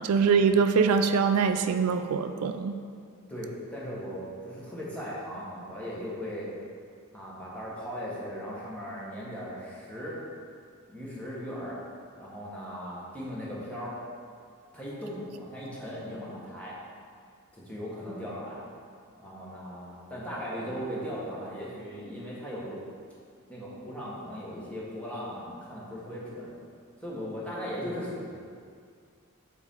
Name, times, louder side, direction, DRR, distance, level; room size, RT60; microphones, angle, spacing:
voice 1, 0.0-2.7, right 5 dB, 85° right, 8 dB, 0.3 m, -23 dB
voice 2, 3.3-6.5 7.1-10.2 10.9-11.8 12.2-14.0 14.7-16.8 17.5-18.7 19.2-22.8 23.5-26.5 27.0-28.4, equal, 5° left, -7 dB, 1.4 m, -38 dB
8.1 x 4.2 x 3.7 m, 2.2 s
head